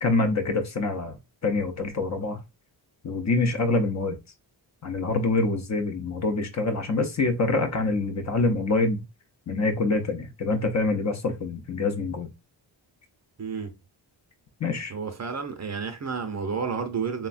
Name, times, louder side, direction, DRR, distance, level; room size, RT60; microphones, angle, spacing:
voice 1, 0.0-2.4 3.0-4.2 4.8-9.0 9.5-12.3 14.6-14.9, left 3 dB, 35° left, 0.6 m, -25 dB
voice 2, 13.4-13.7 14.9-17.3, right 5 dB, 35° right, 0.6 m, -31 dB
3.2 x 2.1 x 2.4 m
cardioid pair, 60°, 46 cm